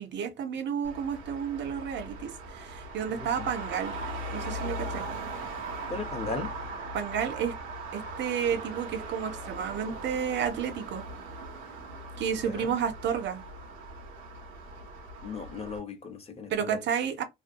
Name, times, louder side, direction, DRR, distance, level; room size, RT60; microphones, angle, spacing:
voice 1, 0.0-4.0 4.3-5.0 6.9-7.5 7.9-11.0 12.2-13.4 16.5-17.2, right 7 dB, 65° right, 0.6 m, -31 dB
Traffic noise roadway noise, 0.8-15.8, right 2 dB, 90° right, 0.9 m, -39 dB
voice 2, 3.1-3.5 5.9-6.5 12.4-12.8 15.2-16.8, left 4 dB, 30° left, 0.5 m, -37 dB
2.5 x 2.2 x 2.5 m
cardioid pair, 90°, 20 cm